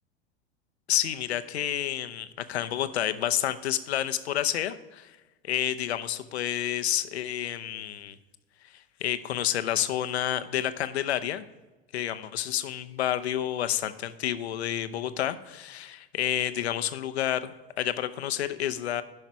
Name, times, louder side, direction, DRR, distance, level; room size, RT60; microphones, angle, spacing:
voice 1, 0.9-5.1 5.4-8.2 9.0-11.4 11.9-19.0, left 11 dB, 80° left, 11 dB, 0.7 m, -29 dB
11.0 x 5.7 x 4.6 m, 1.1 s
hypercardioid pair, 100°, 32 cm